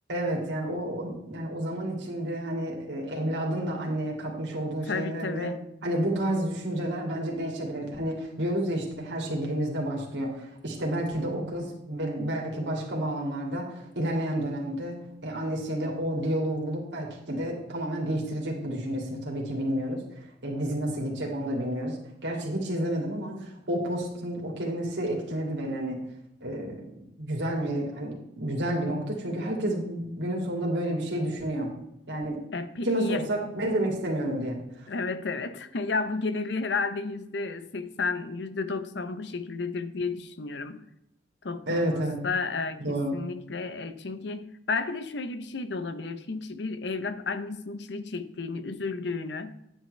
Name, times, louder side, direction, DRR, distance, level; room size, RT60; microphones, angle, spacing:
voice 1, 0.1-5.5 5.8-22.0 22.2-26.0 26.4-31.7 32.1-32.4 32.8-34.9 41.7-42.2 42.8-43.2, right 1 dB, 80° right, -1 dB, 2.6 m, -30 dB
voice 2, 4.6-5.6 32.5-33.3 34.9-40.8 41.4-49.5, left 4 dB, 70° left, 12 dB, 0.7 m, -32 dB
9.7 x 8.9 x 3.3 m, 0.83 s
head